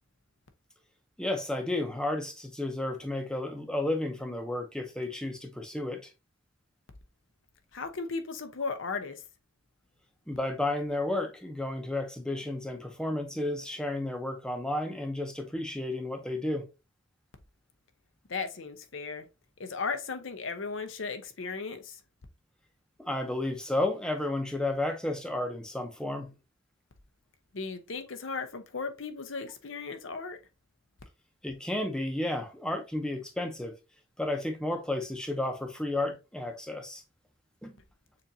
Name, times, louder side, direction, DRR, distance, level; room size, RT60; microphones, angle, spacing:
voice 1, 1.2-6.1 10.3-16.7 23.0-26.3 31.4-33.7 34.2-37.0 37.6-37.8, left 1 dB, 5° left, 0.7 m, -32 dB
voice 2, 7.7-9.2 18.3-19.3 19.6-22.0 27.5-30.4, left 4 dB, 70° left, 0.7 m, -36 dB
6.8 x 2.5 x 2.7 m
head